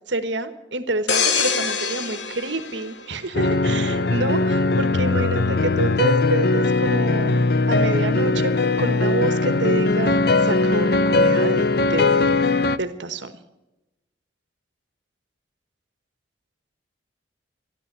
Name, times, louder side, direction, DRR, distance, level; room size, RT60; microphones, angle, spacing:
voice 1, 0.1-11.6 11.9-12.3 12.7-13.4, right 2 dB, 80° right, 11 dB, 1.3 m, -28 dB
sound 1, 1.1-3.8 4.2-4.4, left 5 dB, 80° left, 1.3 m, -25 dB
sound 2, 3.3-12.8, left 3 dB, 55° left, 0.6 m, -20 dB
14.0 x 12.0 x 8.3 m, 0.97 s
head